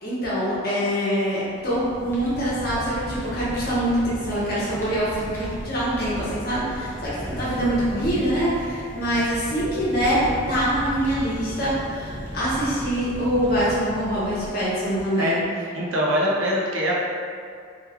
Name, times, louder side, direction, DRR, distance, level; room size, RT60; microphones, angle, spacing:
voice 1, 0.0-15.4, equal, 45° left, -9 dB, 0.9 m, -24 dB
Fire, 1.5-15.0, equal, 10° left, 0.4 m, -36 dB
voice 2, 15.7-16.9, equal, 75° right, -4 dB, 0.6 m, -23 dB
3.0 x 2.3 x 3.4 m, 2.3 s
head